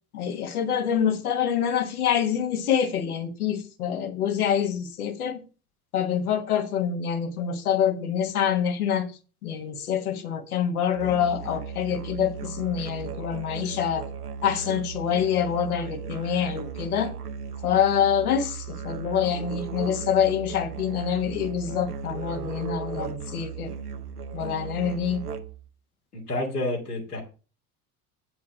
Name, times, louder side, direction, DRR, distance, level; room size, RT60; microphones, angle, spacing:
voice 1, 0.1-5.4 5.9-9.1 9.4-14.0 14.4-17.1 17.6-23.7 24.3-25.2, left 8 dB, 75° left, 1.6 m, -26 dB
Musical instrument, 10.9-25.7, right 6 dB, 85° right, 0.9 m, -36 dB
voice 2, 26.1-27.2, left 2 dB, 90° left, 2.7 m, -29 dB
8.2 x 6.1 x 5.1 m
figure-of-eight pair, 70°, 45 cm